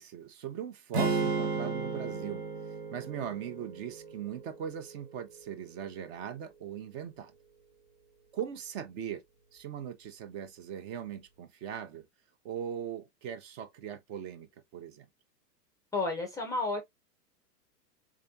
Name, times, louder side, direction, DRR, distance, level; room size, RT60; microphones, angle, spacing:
voice 1, 0.0-2.4 2.9-7.3 8.3-9.2 9.5-12.1 12.4-15.1, right 9 dB, 40° right, 0.7 m, -40 dB
sound 1, 0.9-5.1, right 4 dB, 65° right, 1.5 m, -34 dB
voice 2, 15.9-16.8, left 3 dB, 5° left, 0.5 m, -31 dB
3.6 x 3.3 x 2.6 m
hypercardioid pair, 105°, 49 cm